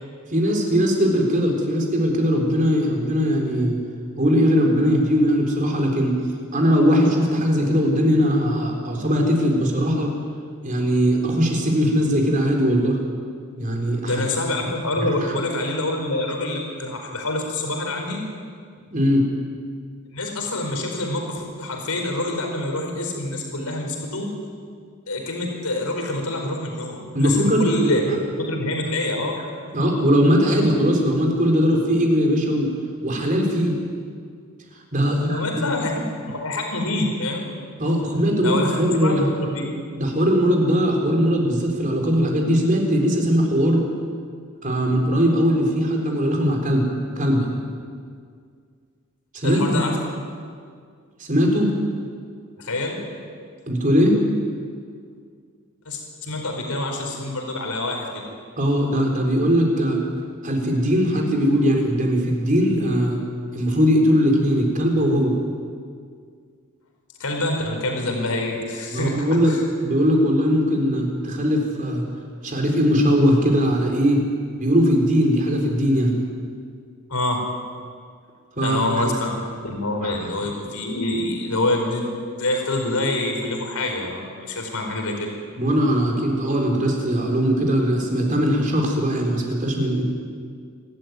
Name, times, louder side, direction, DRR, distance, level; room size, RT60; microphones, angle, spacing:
voice 1, 0.3-3.8 4.2-6.1 6.5-10.1 10.6-13.0 13.6-14.2 15.0-15.1 18.9-19.3 27.1-27.7 29.7-32.7 33.0-33.8 34.9-35.6 37.8-39.3 40.0-43.8 44.6-46.9 47.2-47.5 49.4-49.9 51.3-51.7 53.7-54.2 58.6-60.0 60.4-63.2 63.5-65.4 68.9-69.5 69.8-72.1 72.4-74.2 74.6-76.2 78.6-79.2 80.0-80.1 85.6-90.0, equal, 35° right, 1 dB, 4.2 m, -20 dB
voice 2, 14.0-18.2 20.1-24.3 25.1-29.4 35.1-35.9 36.2-37.6 38.4-39.7 49.4-49.9 52.6-53.0 55.8-58.2 67.2-69.6 77.1-77.4 78.6-79.3 79.6-82.0 82.4-85.3, left 1 dB, 85° left, 2 dB, 4.7 m, -26 dB
27.5 x 13.0 x 9.5 m, 2.1 s
head